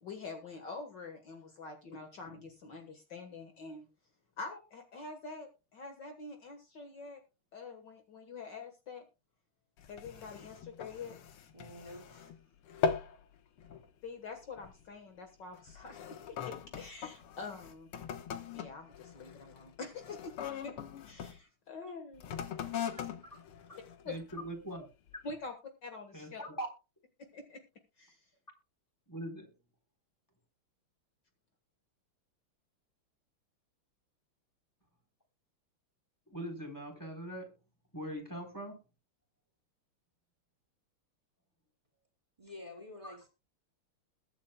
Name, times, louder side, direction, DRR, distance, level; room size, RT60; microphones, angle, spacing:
voice 1, 0.0-3.9 4.4-7.2 7.5-9.0 9.9-11.2 14.0-17.9 18.5-20.3 20.6-22.3 24.1-24.2 25.2-25.5 25.8-26.4 27.3-27.6 28.0-28.2, left 4 dB, 55° left, 5 dB, 2.0 m, -46 dB
sound 1, 9.8-12.4 12.7-13.2 13.6-13.9 14.6-14.8 15.5-21.4 22.1-24.5 25.1-25.2, left 6 dB, 80° left, 2.1 m, -40 dB
voice 2, 11.5-12.3 22.9-23.0 42.4-43.3, left 2 dB, 20° right, 1 dB, 4.2 m, -49 dB
voice 3, 24.0-24.9 26.1-26.7 29.1-29.5 36.3-37.5 37.9-38.8 43.0-43.2, right 1 dB, 10° left, 3 dB, 3.6 m, -41 dB
21.5 x 8.9 x 2.2 m, 0.29 s
omnidirectional pair, 2.4 m